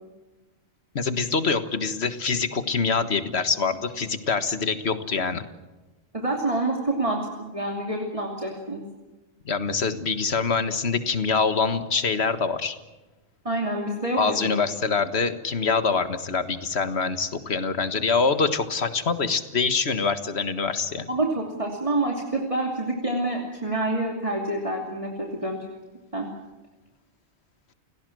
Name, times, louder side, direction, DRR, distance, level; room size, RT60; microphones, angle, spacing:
voice 1, 0.9-5.4 9.4-12.8 14.2-21.0, left 4 dB, 70° left, 10 dB, 1.8 m, -25 dB
voice 2, 6.1-8.8 13.4-14.5 21.1-25.6 26.1-26.3, right 2 dB, 30° right, 0 dB, 2.9 m, -27 dB
30.0 x 17.0 x 7.8 m, 1.1 s
omnidirectional pair, 1.1 m